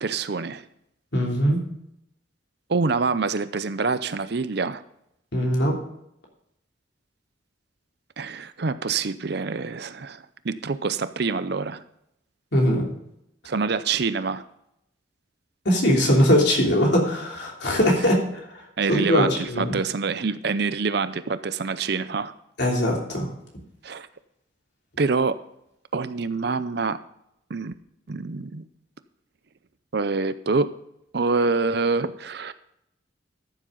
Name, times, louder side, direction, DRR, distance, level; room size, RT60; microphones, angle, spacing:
voice 1, 0.0-0.6 2.7-4.8 8.2-11.8 13.4-14.4 18.8-22.3 23.8-24.1 25.0-25.4 25.9-27.0 27.5-27.7 28.1-28.7 29.9-30.7 31.1-32.5, right 4 dB, 55° right, 13 dB, 0.6 m, -26 dB
voice 2, 1.1-1.6 5.3-5.8 12.5-12.9 15.6-18.2 18.9-19.7 22.6-23.3, equal, 60° left, 0 dB, 3.1 m, -21 dB
14.0 x 7.5 x 3.9 m, 0.77 s
head